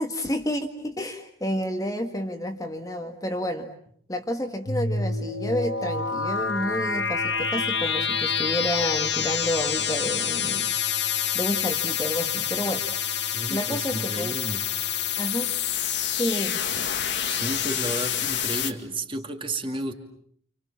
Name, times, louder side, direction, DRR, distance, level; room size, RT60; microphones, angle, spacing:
voice 1, 0.0-3.7 4.1-10.7 11.3-12.9 13.5-14.4 15.2-15.5 16.2-16.6, equal, 20° left, 5 dB, 1.8 m, -30 dB
sound 1, 4.7-18.7, left 7 dB, 65° left, 2.0 m, -27 dB
voice 2, 13.3-14.6 17.3-19.9, right 1 dB, 25° right, 5 dB, 2.6 m, -32 dB
30.0 x 27.5 x 7.3 m, 0.65 s
head